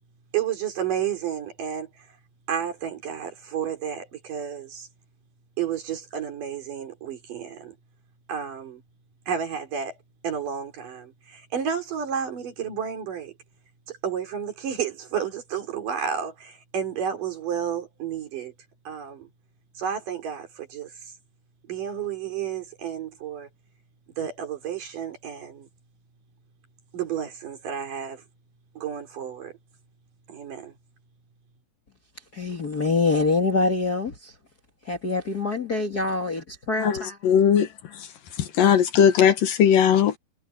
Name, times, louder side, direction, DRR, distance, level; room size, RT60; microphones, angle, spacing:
voice 1, 0.3-2.1 2.5-4.9 5.6-7.8 8.3-8.8 9.3-10.0 10.2-13.3 13.9-18.5 18.9-19.3 19.8-20.9 21.6-23.5 24.2-25.7 26.9-28.2 28.8-29.6 30.3-30.7, right 8 dB, 65° right, 5.2 m, -31 dB
voice 2, 32.3-34.3 34.8-37.2, left 3 dB, 35° left, 1.8 m, -25 dB
voice 3, 36.8-38.1 38.4-40.2, left 8 dB, 70° left, 3.3 m, -19 dB
omnidirectional pair, 4.1 m